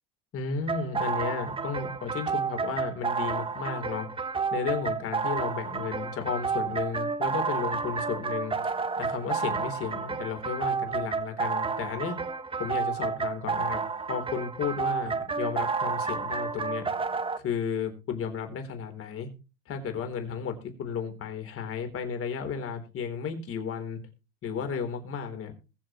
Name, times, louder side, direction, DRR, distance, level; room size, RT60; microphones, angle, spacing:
voice 1, 0.3-4.1 4.5-8.5 9.0-12.2 12.6-13.8 14.1-16.8 17.4-19.3 19.7-24.0 24.4-25.5, left 6 dB, 35° left, 6 dB, 3.8 m, -33 dB
sound 1, 0.7-17.4, right 5 dB, 15° right, 1.2 m, -30 dB
21.0 x 7.1 x 3.1 m, 0.32 s
supercardioid pair, 120°, 37 cm